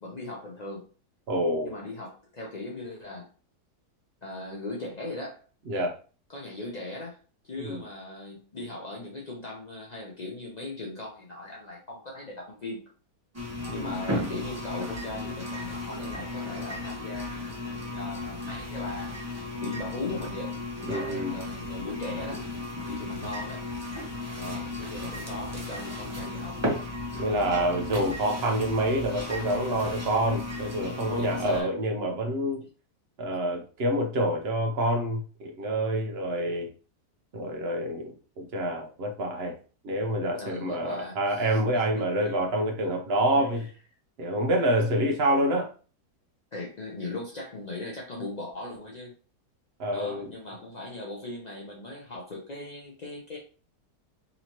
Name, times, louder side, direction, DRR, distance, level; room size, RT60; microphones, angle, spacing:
voice 1, 0.0-0.9 1.6-3.3 4.2-5.4 6.3-7.2 7.4-12.9 13.7-19.2 19.6-22.4 22.9-23.6 24.4-26.6 27.5-27.8 31.2-31.7 40.3-41.6 41.9-42.4 43.3-43.5 46.5-49.2 49.9-53.4, left 2 dB, 70° left, -3 dB, 0.4 m, -39 dB
voice 2, 1.3-1.8 5.7-6.0 7.6-7.8 13.7-14.0 20.9-21.4 27.2-32.6 33.2-36.7 37.3-39.5 39.8-43.7 44.2-45.7 49.8-50.3, right 1 dB, 55° right, 2 dB, 0.7 m, -27 dB
sound 1, 13.3-31.6, left 2 dB, 25° right, 0.3 m, -35 dB
4.1 x 2.8 x 2.9 m, 0.38 s
omnidirectional pair, 1.8 m